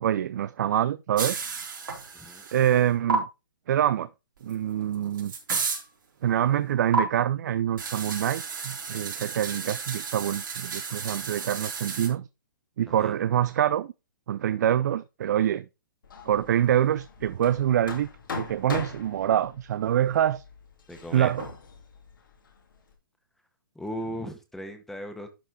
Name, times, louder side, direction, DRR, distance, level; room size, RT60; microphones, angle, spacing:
voice 1, 0.0-1.4 2.5-3.3 3.7-4.1 4.4-5.3 6.2-12.3 12.8-13.9 14.3-15.6 16.2-18.1 18.3-20.4 21.1-21.5, right 10 dB, 55° right, 0.5 m, -25 dB
sound 1, 1.2-2.8 3.1-3.2 4.5-4.6 4.9-5.8 6.9-7.0 7.8-12.1, right 5 dB, 70° right, 3.8 m, -32 dB
Hammer, 16.0-22.9, left 4 dB, 70° left, 2.8 m, -41 dB
voice 2, 20.9-21.3 23.7-25.3, equal, 5° left, 1.5 m, -37 dB
11.5 x 5.4 x 4.0 m
hypercardioid pair, 130°, 11 cm